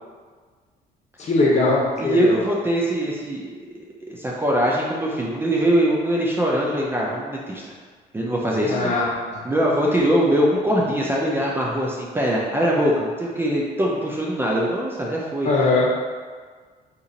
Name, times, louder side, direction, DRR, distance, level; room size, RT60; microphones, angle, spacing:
voice 1, 1.2-2.4 8.6-9.1 9.3-9.4 15.4-15.9, left 2 dB, 45° left, -4 dB, 0.9 m, -20 dB
voice 2, 2.0-3.4 3.7-3.8 4.1-7.7 8.1-8.9 9.4-15.5, equal, 15° right, -4 dB, 0.5 m, -22 dB
2.9 x 2.6 x 3.8 m, 1.5 s
cardioid pair, 110°, 17 cm